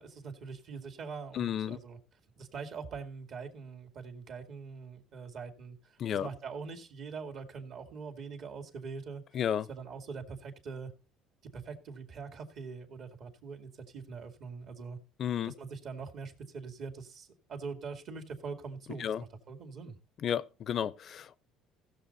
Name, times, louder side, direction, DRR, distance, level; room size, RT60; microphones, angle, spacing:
voice 1, 0.0-2.0 2.4-9.2 9.7-10.9 11.5-15.0 15.5-20.0, right 5 dB, 55° right, 2.1 m, -43 dB
voice 2, 1.3-1.8 6.0-6.3 9.3-9.7 15.2-15.5 19.0-19.2 20.2-21.4, left 9 dB, 50° left, 0.6 m, -32 dB
16.0 x 6.7 x 4.1 m
cardioid pair, 105°, 0 cm